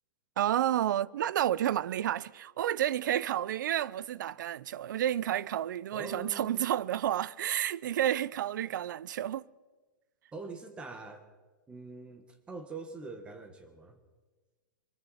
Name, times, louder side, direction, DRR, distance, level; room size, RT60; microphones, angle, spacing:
voice 1, 0.4-9.4, right 11 dB, 75° right, 0.5 m, -30 dB
voice 2, 5.9-6.6 10.3-11.3 11.7-14.0, right 3 dB, 10° right, 1.4 m, -44 dB
23.5 x 14.0 x 4.2 m
supercardioid pair, 170°, 10 cm